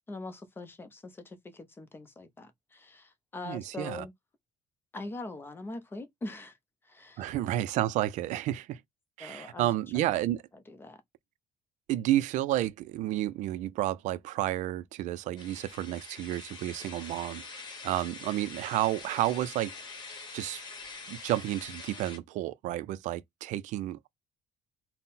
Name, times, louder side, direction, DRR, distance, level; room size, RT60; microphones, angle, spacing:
voice 1, 0.1-4.1 4.9-6.6 6.8-7.3 9.2-10.1 10.7-11.0, left 2 dB, 15° left, 0.6 m, -42 dB
voice 2, 3.4-4.0 7.2-8.8 9.2-10.4 11.9-19.7 20.3-20.6 21.1-24.1, right 14 dB, 70° right, 0.4 m, -31 dB
sound 1, 15.4-22.2, left 4 dB, 35° left, 1.0 m, -45 dB
3.7 x 2.1 x 4.0 m
cardioid pair, 150°, 13 cm